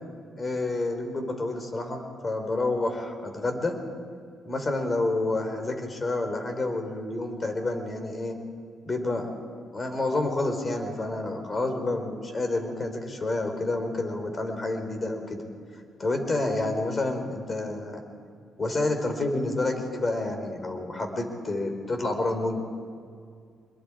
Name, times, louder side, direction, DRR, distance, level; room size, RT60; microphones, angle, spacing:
voice 1, 0.4-3.7 4.4-8.3 8.8-9.3 9.7-15.4 16.0-18.0 18.6-22.6, left 2 dB, 30° left, 5 dB, 4.1 m, -29 dB
25.5 x 22.0 x 5.0 m, 2.2 s
cardioid pair, 90°, 0 cm